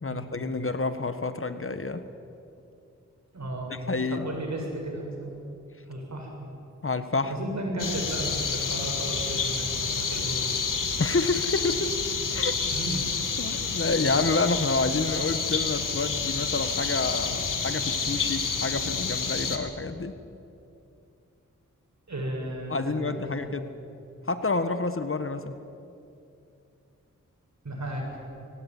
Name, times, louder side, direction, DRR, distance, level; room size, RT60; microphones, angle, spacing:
voice 1, 0.0-2.0 3.9-4.3 6.8-7.4 11.0-11.9 12.3-12.5 13.4-20.1 22.7-23.7 24.3-25.5, left 3 dB, 40° left, 10 dB, 1.5 m, -28 dB
voice 2, 3.3-3.8 4.1-5.3 5.8-6.5 7.3-10.4 12.7-13.1 22.1-22.9 23.2-23.5 27.6-28.1, right 1 dB, 60° right, 0 dB, 7.8 m, -34 dB
sound 1, 7.8-19.6, left 5 dB, 80° left, 2.2 m, -29 dB
24.0 x 17.5 x 9.6 m, 2.7 s
cardioid pair, 50°, 32 cm